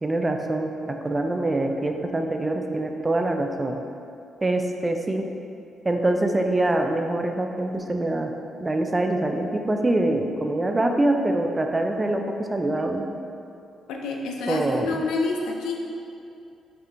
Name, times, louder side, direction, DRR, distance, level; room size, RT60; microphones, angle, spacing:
voice 1, 0.0-3.8 4.4-5.3 5.8-8.3 8.6-13.1 14.5-15.0, right 2 dB, 25° right, 4 dB, 0.4 m, -24 dB
voice 2, 13.9-15.8, left 3 dB, 85° left, 1 dB, 0.4 m, -28 dB
5.5 x 2.9 x 2.5 m, 2.6 s
supercardioid pair, 65°, 0 cm